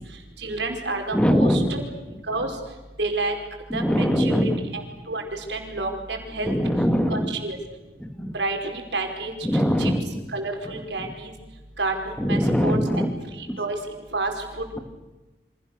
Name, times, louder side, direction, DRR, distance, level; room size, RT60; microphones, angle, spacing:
voice 1, 0.4-1.8 2.3-2.5 3.0-3.3 3.7-4.8 5.1-6.5 7.1-7.6 8.3-9.9 10.3-11.3 11.8-13.0 13.4-13.8 14.1-14.8, right 2 dB, 90° right, 3 dB, 4.9 m, -29 dB
voice 2, 1.1-1.7 3.7-4.6 6.5-7.3 8.0-8.3 9.4-10.0 12.2-13.1, equal, 5° left, 7 dB, 1.9 m, -21 dB
29.5 x 26.0 x 6.7 m, 1.1 s
head